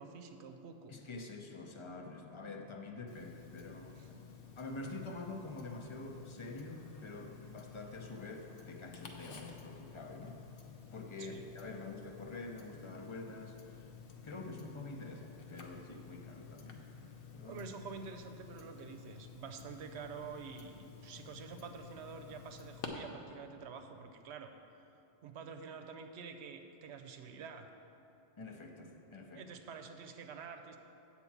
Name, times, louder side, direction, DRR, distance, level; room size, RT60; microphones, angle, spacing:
voice 1, 0.0-0.9 4.0-4.2 11.2-11.5 17.4-24.5 25.2-27.7 29.3-30.8, right 5 dB, 80° right, 6 dB, 0.9 m, -48 dB
voice 2, 0.9-4.2 4.6-10.4 10.9-13.9 14.2-16.8 17.3-17.6 28.4-29.4, left 3 dB, 35° left, 3 dB, 0.5 m, -46 dB
Tick-tock, 3.1-22.9, left 7 dB, 60° left, 0.9 m, -53 dB
8.2 x 4.4 x 7.2 m, 2.9 s
omnidirectional pair, 1.1 m